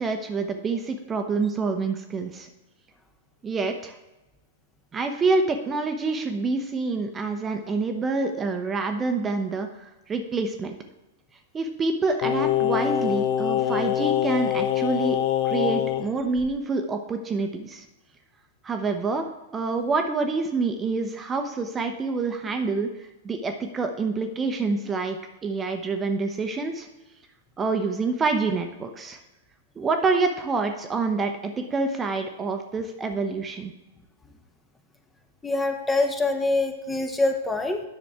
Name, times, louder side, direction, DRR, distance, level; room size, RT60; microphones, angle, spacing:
voice 1, 0.0-2.5 3.4-3.9 4.9-10.8 11.5-15.2 15.4-17.9 18.6-22.9 23.2-25.2 25.4-26.9 27.6-29.2 29.8-33.7, right 3 dB, 20° right, 5 dB, 0.8 m, -27 dB
Singing, 12.2-16.1 16.4-16.5, left 10 dB, 50° left, 0.5 m, -24 dB
voice 2, 35.4-37.8, left 2 dB, 10° left, 5 dB, 0.9 m, -24 dB
10.0 x 6.1 x 3.4 m, 0.99 s
figure-of-eight pair, 100°, 0 cm